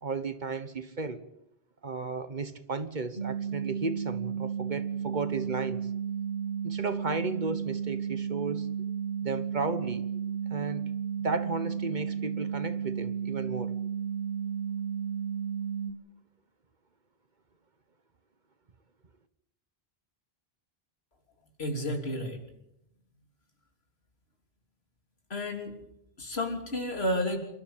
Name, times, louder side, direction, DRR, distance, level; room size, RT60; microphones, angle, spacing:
voice 1, 0.0-1.2 1.8-5.9 6.6-8.7 9.2-10.0 10.5-10.8 11.2-13.7, right 3 dB, 50° right, 1.4 m, -34 dB
sound 1, 3.2-15.9, right 7 dB, 65° left, 2.0 m, -33 dB
voice 2, 21.6-22.4 25.3-25.7 26.2-27.4, left 1 dB, 85° left, 3.5 m, -31 dB
28.0 x 13.0 x 8.9 m
omnidirectional pair, 1.0 m